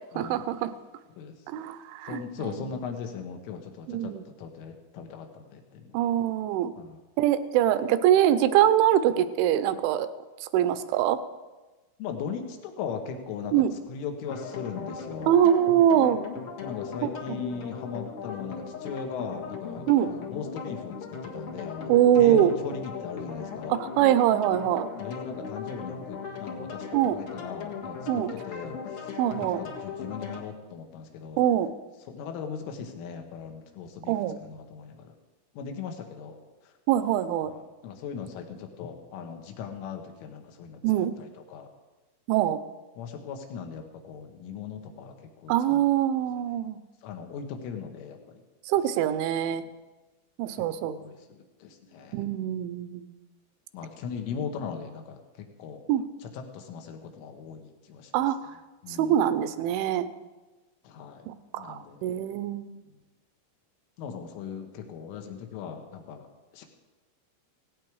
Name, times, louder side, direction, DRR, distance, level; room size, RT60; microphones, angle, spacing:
voice 1, 0.2-0.7 1.5-2.8 3.9-4.2 5.9-6.7 7.2-10.1 10.4-11.2 13.5-13.7 15.3-16.2 17.0-17.5 19.9-20.1 21.9-22.5 23.7-24.9 26.9-27.2 28.1-28.4 29.2-29.6 31.4-31.7 34.1-34.4 36.9-37.5 40.8-41.1 42.3-42.6 45.5-46.8 48.7-49.6 50.4-51.0 52.1-53.1 55.9-56.0 58.1-58.5 58.9-60.1 61.3-62.7, right 11 dB, 80° right, 12 dB, 3.1 m, -24 dB
voice 2, 2.1-4.1 4.4-5.8 6.8-6.9 12.0-13.5 13.9-15.4 16.6-21.0 21.2-21.9 22.2-23.7 25.0-26.8 27.1-28.0 28.5-28.8 29.4-29.7 30.0-31.4 32.1-34.1 34.5-35.1 35.6-36.4 37.5-40.8 41.5-41.7 43.0-45.1 45.4-45.8 47.0-48.2 50.8-51.1 51.6-52.1 53.7-55.8 56.5-58.0 58.8-59.1 60.9-61.2 61.6-62.0 64.0-66.2 66.5-66.7, left 6 dB, 80° left, 4 dB, 4.1 m, -38 dB
sound 1, 14.3-30.4, left 6 dB, 65° left, 1.4 m, -38 dB
17.5 x 17.5 x 4.8 m, 1.2 s
omnidirectional pair, 5.6 m